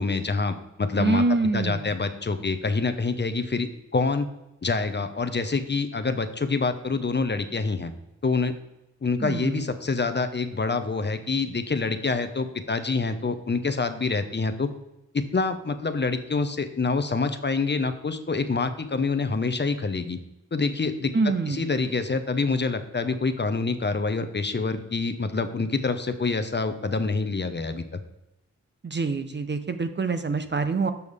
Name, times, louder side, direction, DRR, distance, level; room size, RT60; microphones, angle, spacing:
voice 1, 0.0-1.2 1.5-4.3 4.6-7.9 8.2-8.5 9.0-14.7 15.1-20.2 20.5-21.1 21.5-28.0, left 4 dB, 30° left, 9 dB, 0.9 m, -26 dB
voice 2, 1.0-1.9 9.2-9.7 21.1-21.7 28.8-30.9, right 3 dB, 30° right, 9 dB, 0.8 m, -25 dB
6.9 x 6.2 x 3.6 m, 0.91 s
supercardioid pair, 40°, 34 cm